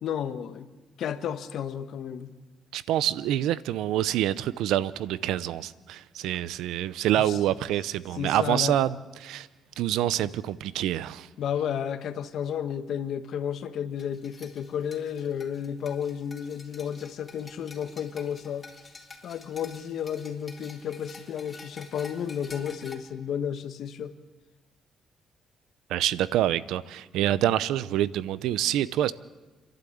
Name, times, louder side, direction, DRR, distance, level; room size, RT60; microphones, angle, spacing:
voice 1, 0.0-0.7 1.0-2.3 7.2-7.4 8.1-8.8 11.4-18.6 19.2-24.1, left 8 dB, 70° left, 1.3 m, -32 dB
voice 2, 2.7-9.5 9.8-11.3 25.9-29.1, right 12 dB, 90° right, 0.7 m, -26 dB
sound 1, 14.0-23.0, left 3 dB, 25° left, 3.7 m, -49 dB
30.0 x 12.0 x 8.6 m
cardioid pair, 90°, 0 cm